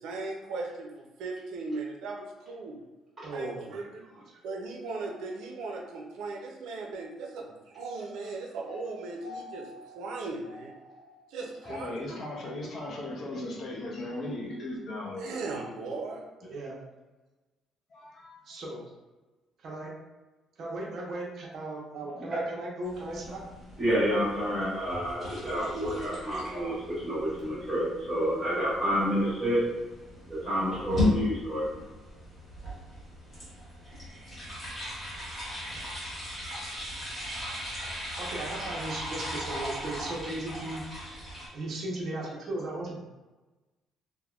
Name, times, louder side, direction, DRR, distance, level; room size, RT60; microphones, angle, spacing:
voice 1, 0.0-2.8 3.3-4.0 4.4-9.7 9.9-10.7 11.3-12.0 15.2-16.2, right 3 dB, 80° right, 0 dB, 0.5 m, -38 dB
voice 2, 3.2-4.4 16.5-16.8 18.5-18.8 19.6-19.9 20.6-23.4 38.2-40.8 41.5-43.0, right 2 dB, 45° right, -3 dB, 0.7 m, -37 dB
voice 3, 8.7-10.0 10.5-11.3 22.1-22.4 23.8-29.6 30.3-31.6, equal, 10° right, -10 dB, 1.3 m, -30 dB
voice 4, 11.7-15.3 17.9-18.4, left 1 dB, 40° left, -2 dB, 0.6 m, -37 dB
sound 1, 22.8-41.5, left 1 dB, 20° left, 1.2 m, -37 dB
3.4 x 2.1 x 2.3 m, 1.2 s
cardioid pair, 175°, 0 cm